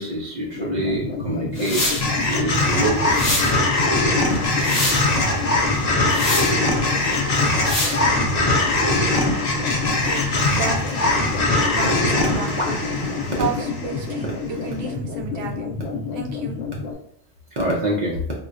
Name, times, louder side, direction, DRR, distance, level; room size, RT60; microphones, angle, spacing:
voice 1, 0.0-2.0 2.2-3.4 10.5-10.6 12.6-12.7 13.2-13.3 17.6-18.2, right 1 dB, 55° right, -3 dB, 0.5 m, -25 dB
sound 1, 0.5-16.9, left 4 dB, 75° left, 0.9 m, -30 dB
sound 2, 1.6-2.0 3.1-3.5 4.3-5.0 6.1-6.5 7.6-8.0, left 1 dB, 30° left, 0.8 m, -24 dB
sound 3, 2.0-14.3, left 2 dB, 55° left, 0.5 m, -21 dB
voice 2, 10.0-12.8 13.4-15.7 16.1-16.9, right 4 dB, 85° right, 2 dB, 1.0 m, -32 dB
4.1 x 2.1 x 2.4 m, 0.70 s
omnidirectional pair, 1.4 m